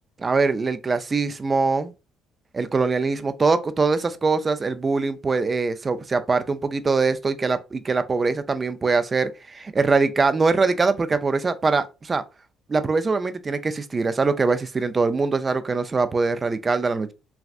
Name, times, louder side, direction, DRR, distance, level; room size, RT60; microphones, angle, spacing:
voice 1, 0.2-1.9 2.5-12.2 12.7-17.1, right 4 dB, 30° right, 0.4 m, -23 dB
3.2 x 2.4 x 2.4 m
cardioid pair, 95°, 0 cm